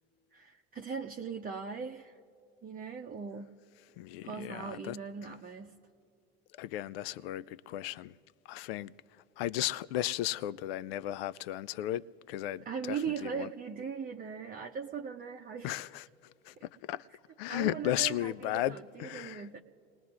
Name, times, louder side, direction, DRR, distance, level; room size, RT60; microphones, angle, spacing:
voice 1, 0.3-2.2 2.6-3.5 4.2-5.8 12.7-15.8 17.5-19.6, right 6 dB, 25° right, 0.7 m, -39 dB
voice 2, 4.0-5.0 6.6-8.1 8.5-8.9 9.4-13.5 15.6-16.0 16.5-17.1 17.4-19.5, left 14 dB, 65° left, 0.5 m, -35 dB
30.0 x 19.5 x 2.5 m
hypercardioid pair, 70°, 32 cm